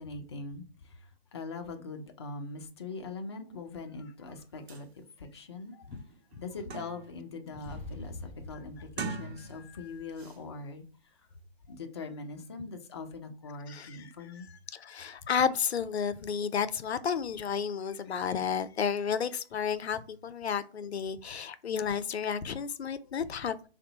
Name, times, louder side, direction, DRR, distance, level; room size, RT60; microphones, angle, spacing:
voice 1, 0.0-5.9 6.4-10.8 11.7-14.5 23.0-23.1, left 3 dB, 25° left, 0.4 m, -42 dB
sound 1, 4.4-4.5 4.7-4.9 5.4-5.5 5.9-7.2 7.6-8.0 8.8-9.8 10.1-10.4, right 4 dB, 85° right, 0.6 m, -41 dB
sound 2, 7.6-10.6, left 2 dB, 5° left, 1.2 m, -45 dB
voice 2, 9.5-10.0 13.7-14.1 14.7-23.7, left 7 dB, 90° left, 0.5 m, -32 dB
3.7 x 2.0 x 2.7 m
figure-of-eight pair, 140°, 31 cm